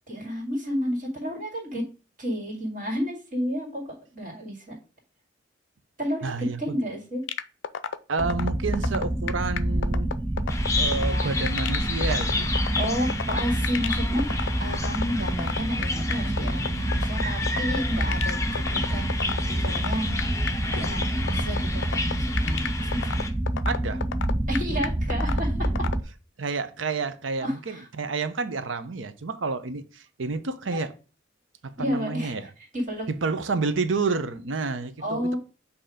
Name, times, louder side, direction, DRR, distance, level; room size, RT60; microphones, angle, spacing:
voice 1, 0.1-1.8 2.2-4.8 6.0-7.2 10.8-11.5 12.8-20.2 20.7-23.0 24.5-25.9 27.4-27.9 30.7-30.8 31.8-32.5 32.7-33.1 35.0-35.4, equal, 45° right, 2.3 m, -31 dB
voice 2, 6.2-7.0 8.1-10.1 10.8-12.5 23.7-24.0 26.4-30.9 31.6-32.5 33.2-35.4, right 4 dB, 85° right, 0.7 m, -29 dB
sound 1, 7.3-26.0, left 7 dB, 70° left, 0.4 m, -30 dB
sound 2, 8.2-26.0, right 1 dB, 15° right, 0.3 m, -27 dB
Bird vocalization bird call bird song, 10.5-23.3, left 3 dB, 15° left, 0.7 m, -32 dB
7.8 x 2.8 x 5.0 m
head